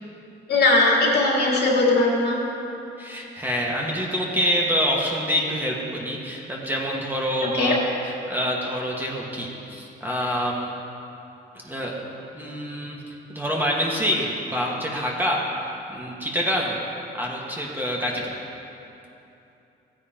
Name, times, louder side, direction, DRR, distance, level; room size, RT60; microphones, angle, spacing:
voice 1, 0.5-2.4 7.6-7.8, left 2 dB, 55° left, -3 dB, 2.4 m, -19 dB
voice 2, 3.0-10.7 11.6-12.0 12.3-13.0 13.3-16.8 17.1-18.2, equal, 10° right, -3 dB, 1.6 m, -26 dB
15.0 x 9.6 x 3.0 m, 2.9 s
cardioid pair, 90°, 20 cm